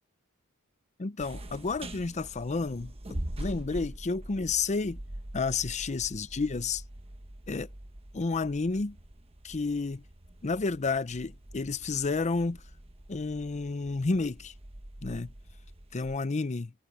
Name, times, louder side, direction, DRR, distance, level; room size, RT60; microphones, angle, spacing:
voice 1, 1.0-5.0 5.3-6.8 7.5-7.7 8.1-9.0 9.4-10.0 10.4-12.6 13.1-14.5 15.0-15.3 15.9-16.7, left 4 dB, 30° left, 0.6 m, -31 dB
sound 1, 1.2-16.2, right 1 dB, 25° right, 1.1 m, -44 dB
head